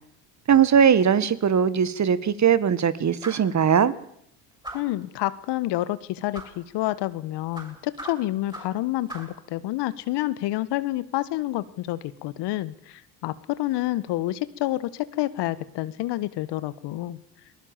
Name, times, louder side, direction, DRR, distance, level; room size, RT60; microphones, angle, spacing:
voice 1, 0.5-3.9, right 7 dB, 35° right, 15 dB, 1.8 m, -20 dB
sound 1, 3.2-3.5 4.6-5.0 6.3-6.6 7.5-8.8 9.1-9.4, right 1 dB, 10° right, 6.7 m, -39 dB
voice 2, 4.7-17.2, left 16 dB, 60° left, 17 dB, 1.3 m, -28 dB
22.5 x 19.5 x 7.3 m, 0.73 s
hypercardioid pair, 70°, 47 cm